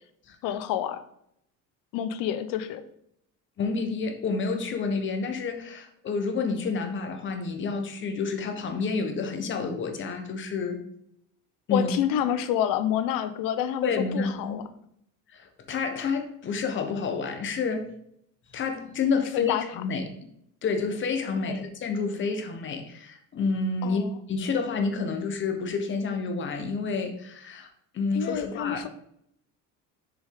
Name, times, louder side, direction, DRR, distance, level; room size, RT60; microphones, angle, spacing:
voice 1, 0.4-1.0 1.9-2.8 11.7-14.6 19.3-19.6 21.5-21.6 23.8-24.1 28.1-28.9, left 10 dB, 80° left, 11 dB, 0.8 m, -28 dB
voice 2, 3.6-10.8 11.7-11.9 13.8-14.7 15.3-17.9 18.5-20.1 20.6-27.7 27.9-28.9, left 4 dB, 35° left, 5 dB, 1.1 m, -29 dB
6.8 x 5.4 x 3.7 m, 0.72 s
cardioid pair, 150°, 33 cm